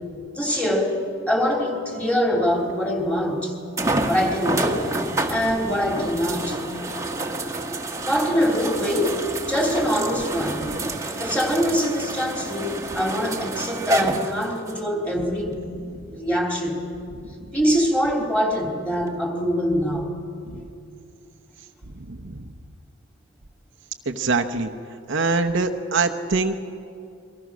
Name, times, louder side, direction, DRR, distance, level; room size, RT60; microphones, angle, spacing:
voice 1, 0.3-0.9 1.3-3.6 4.1-4.9 5.3-6.6 8.0-9.2 9.5-10.6 11.2-15.6 16.1-16.8 17.5-20.1 26.2-26.4, equal, 5° left, 0 dB, 3.4 m, -23 dB
sound 1, 2.7-2.8 3.8-14.8 15.5-15.6 19.1-19.2, right 2 dB, 15° right, 1.3 m, -28 dB
voice 2, 22.0-22.4 24.1-24.7 25.1-26.6, right 3 dB, 60° right, 4 dB, 1.0 m, -24 dB
28.5 x 23.0 x 6.3 m, 2.5 s
head